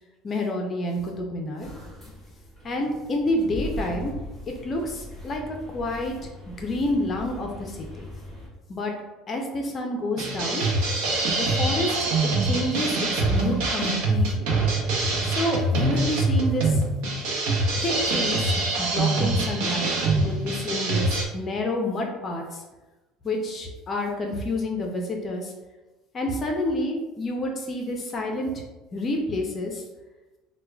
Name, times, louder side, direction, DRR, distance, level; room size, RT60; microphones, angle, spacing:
voice 1, 0.2-1.7 2.6-4.2 4.6-6.1 6.5-8.1 8.7-8.9 9.3-10.7 11.4-12.1 12.4-14.5 15.2-16.8 17.8-18.5 18.8-22.6 23.2-25.5 26.1-28.5 28.9-29.8, left 1 dB, 30° left, 1 dB, 0.5 m, -29 dB
sound 1, 1.6-8.5, left 1 dB, ahead, 1.1 m, -40 dB
sound 2, 10.2-21.2, right 2 dB, 85° right, 0.6 m, -24 dB
4.5 x 2.1 x 2.3 m, 1.1 s
cardioid pair, 140°, 0 cm